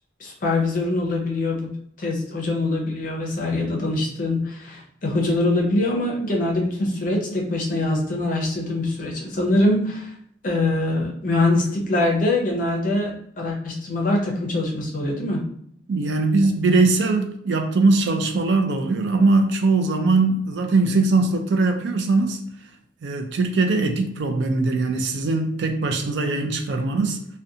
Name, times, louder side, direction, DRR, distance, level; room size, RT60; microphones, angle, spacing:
voice 1, 0.2-10.1 10.4-15.4, left 2 dB, 45° left, -1 dB, 0.5 m, -23 dB
voice 2, 15.9-22.4 23.0-27.2, right 3 dB, 60° right, 5 dB, 0.4 m, -21 dB
2.4 x 2.2 x 2.7 m, 0.67 s
head